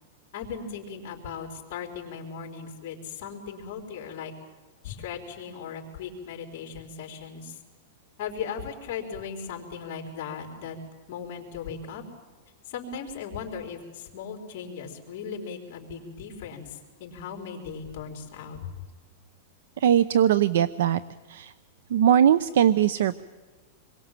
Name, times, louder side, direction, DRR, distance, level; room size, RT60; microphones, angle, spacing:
voice 1, 0.3-4.3 4.8-7.6 8.2-10.8 11.1-12.0 12.7-18.6, left 6 dB, 40° left, 1 dB, 4.3 m, -37 dB
voice 2, 19.8-21.0 21.3-21.5 21.9-23.2, right 9 dB, 70° right, 16 dB, 0.7 m, -20 dB
27.5 x 22.5 x 7.6 m, 1.4 s
supercardioid pair, 175°, 0 cm